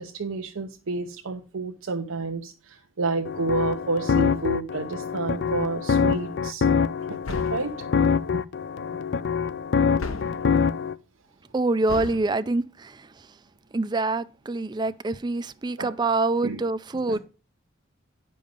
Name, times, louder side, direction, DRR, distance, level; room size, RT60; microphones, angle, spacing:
voice 1, 0.0-6.7 7.1-7.8 8.3-8.4 15.8-15.9 16.4-16.6 17.1-17.2, right 3 dB, 85° right, 0.8 m, -30 dB
sound 1, 3.2-10.9, left 6 dB, 55° left, 0.4 m, -25 dB
sound 2, 7.2-7.8 10.0-10.5 11.9-12.3, left 2 dB, 85° left, 1.0 m, -34 dB
voice 2, 11.5-13.1 13.7-17.2, right 3 dB, 20° right, 0.4 m, -26 dB
10.5 x 5.4 x 5.1 m
head